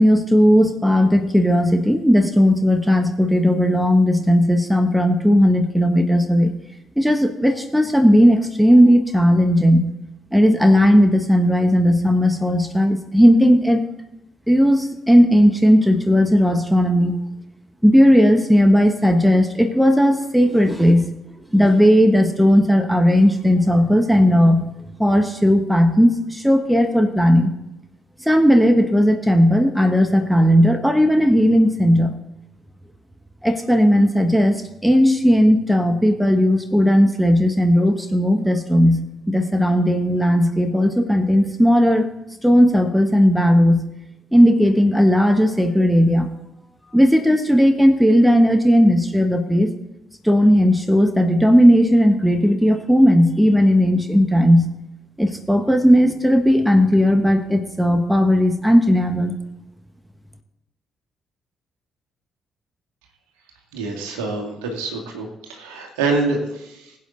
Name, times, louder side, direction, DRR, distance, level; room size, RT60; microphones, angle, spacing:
voice 1, 0.0-6.5 7.0-9.9 10.3-13.9 14.5-17.2 17.8-21.1 21.5-24.7 25.0-27.6 28.2-32.1 33.4-39.0 39.3-42.1 42.4-43.8 44.3-46.3 46.9-49.7 50.2-54.7 55.2-59.3, equal, ahead, 7 dB, 1.4 m, -16 dB
voice 2, 63.7-67.0, right 3 dB, 70° right, 1 dB, 2.3 m, -26 dB
21.0 x 8.5 x 3.9 m, 0.90 s
figure-of-eight pair, 40°, 0 cm